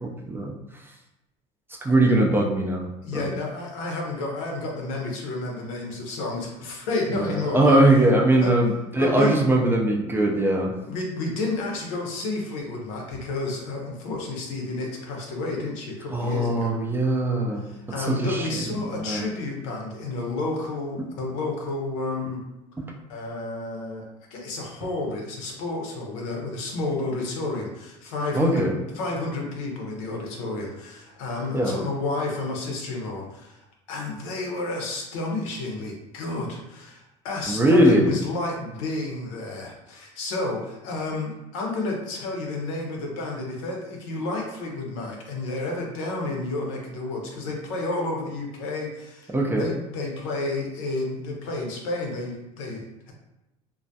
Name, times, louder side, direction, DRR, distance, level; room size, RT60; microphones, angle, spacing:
voice 1, 0.0-0.5 1.8-3.3 7.1-10.7 16.1-17.7 18.0-19.3 22.8-22.9 28.3-28.8 31.5-31.8 37.5-38.2 49.3-49.7, right 1 dB, 15° right, 0 dB, 0.4 m, -21 dB
voice 2, 3.0-7.8 8.4-8.5 9.0-9.5 10.9-16.8 17.6-22.4 23.1-24.0 24.3-28.7 28.9-33.6 33.9-53.1, left 2 dB, 80° left, 0 dB, 0.7 m, -31 dB
2.2 x 2.1 x 2.7 m, 0.92 s
supercardioid pair, 85°, 17 cm